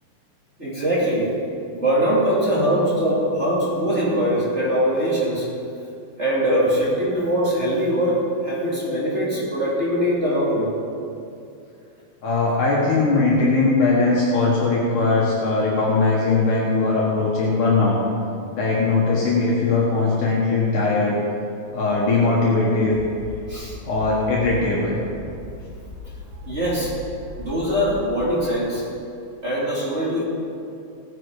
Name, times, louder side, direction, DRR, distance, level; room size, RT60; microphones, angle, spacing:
voice 1, 0.6-1.3 1.7-5.5 6.2-10.7 23.5-23.8 26.5-26.9 27.4-28.8 29.4-30.2, equal, 20° right, -7 dB, 2.7 m, -22 dB
voice 2, 12.2-18.0 18.6-21.2 21.7-23.0 23.9-25.0, left 3 dB, 65° left, -5 dB, 3.0 m, -20 dB
sound 1, 22.9-28.5, left 4 dB, 45° right, 3.9 m, -38 dB
17.0 x 10.0 x 4.9 m, 2.6 s
omnidirectional pair, 4.3 m